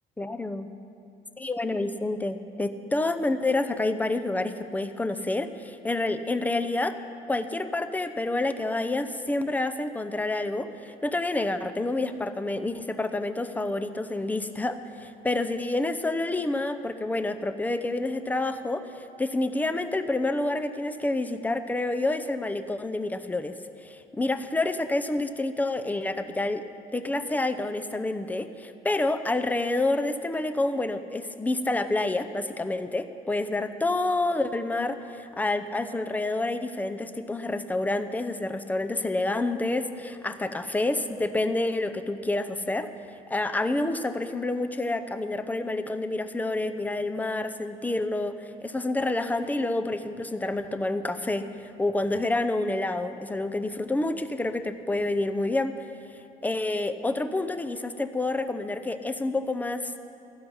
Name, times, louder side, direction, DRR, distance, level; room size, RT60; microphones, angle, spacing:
voice 1, 0.2-0.7 1.4-7.0 7.3-26.6 26.9-42.9 43.3-55.7 56.4-59.9, left 2 dB, 10° left, 10 dB, 0.7 m, -28 dB
16.0 x 12.5 x 5.6 m, 2.8 s
cardioid pair, 110°, 17 cm